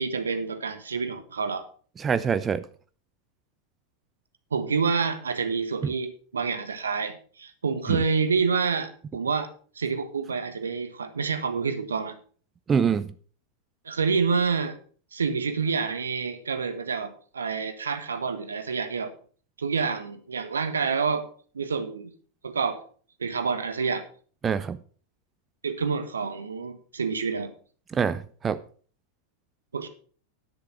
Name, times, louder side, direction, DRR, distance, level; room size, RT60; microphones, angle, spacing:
voice 1, 0.0-1.6 4.5-9.5 9.7-12.2 13.8-14.7 15.1-19.1 19.6-21.3 21.5-22.1 22.4-22.8 23.2-24.0 25.6-27.5 29.7-29.9, right 5 dB, 70° right, 1.3 m, -28 dB
voice 2, 2.0-2.6 7.9-8.0 12.7-13.1 24.4-24.8 27.9-28.6, right 6 dB, 20° right, 0.5 m, -25 dB
10.5 x 6.8 x 5.8 m
figure-of-eight pair, 90°, 0 cm